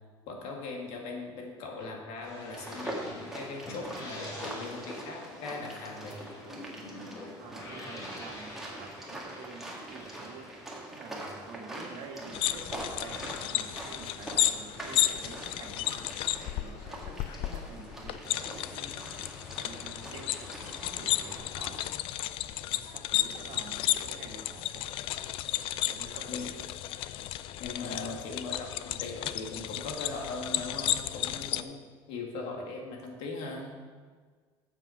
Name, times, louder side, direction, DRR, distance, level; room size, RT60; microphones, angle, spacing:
voice 1, 0.3-6.2 26.3-26.5 27.6-31.8 32.1-33.7, left 3 dB, 75° left, 1 dB, 2.0 m, -39 dB
sound 1, 2.2-12.1 12.3-16.2, left 1 dB, 35° left, 3.3 m, -47 dB
sound 2, 2.5-21.4, right 1 dB, 5° right, 1.8 m, -44 dB
voice 2, 7.4-10.5 10.9-16.1 16.5-19.1 19.5-22.0 22.7-26.5 27.1-27.3, right 4 dB, 60° right, 1 dB, 1.7 m, -48 dB
sound 3, 12.3-31.6, left 13 dB, 60° left, 0.4 m, -33 dB
8.3 x 7.4 x 5.9 m, 1.6 s
cardioid pair, 140°, 10 cm